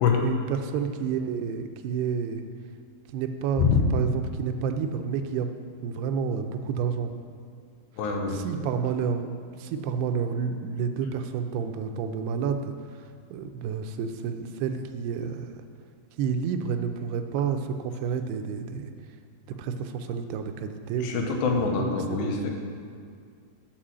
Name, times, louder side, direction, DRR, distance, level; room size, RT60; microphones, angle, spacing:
voice 1, 0.2-2.4 3.1-3.7 3.9-5.5 5.8-7.1 8.0-9.3 9.5-15.5 16.2-18.9 19.6-22.5, right 6 dB, 80° right, 7 dB, 2.6 m, -30 dB
voice 2, 8.0-8.4 21.0-22.5, left 6 dB, 85° left, 2 dB, 3.1 m, -24 dB
10.5 x 4.7 x 7.4 m, 2.2 s
omnidirectional pair, 4.8 m